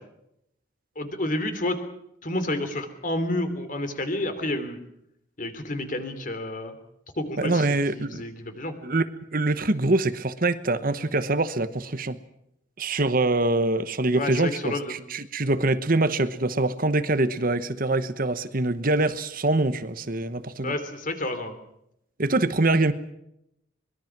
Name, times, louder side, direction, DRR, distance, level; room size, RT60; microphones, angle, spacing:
voice 1, 0.9-1.8 2.2-4.8 5.4-6.8 7.2-8.8 14.1-15.0 20.6-21.5, left 1 dB, 40° left, 8 dB, 3.1 m, -30 dB
voice 2, 7.4-8.2 8.8-9.0 9.3-12.2 12.8-20.7 22.2-22.9, right 2 dB, 45° right, 11 dB, 1.1 m, -24 dB
24.0 x 21.5 x 6.1 m, 0.80 s
head